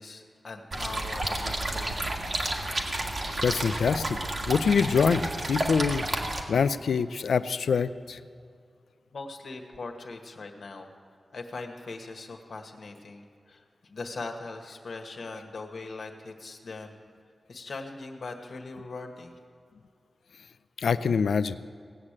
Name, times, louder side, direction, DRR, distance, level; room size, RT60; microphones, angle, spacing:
voice 1, 0.0-1.9 9.1-10.9 11.3-17.0 17.5-19.4, left 3 dB, 75° left, 3 dB, 1.5 m, -40 dB
sound 1, 0.7-6.4, right 1 dB, 55° right, 1.9 m, -31 dB
voice 2, 3.4-4.2 4.5-8.2 20.8-21.6, left 5 dB, 90° left, 13 dB, 0.4 m, -25 dB
17.5 x 6.5 x 8.8 m, 2.3 s
cardioid pair, 55°, 0 cm